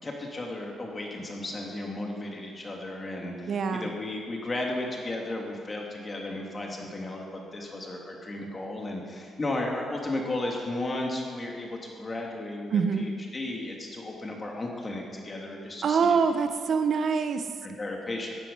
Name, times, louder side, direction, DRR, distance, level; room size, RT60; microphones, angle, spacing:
voice 1, 0.0-16.2 17.6-18.3, left 2 dB, 30° left, 0 dB, 2.9 m, -34 dB
voice 2, 3.5-3.9 12.7-13.0 15.8-17.4, right 5 dB, 55° right, 8 dB, 1.1 m, -25 dB
15.5 x 9.6 x 5.7 m, 2.1 s
cardioid pair, 90°, 0 cm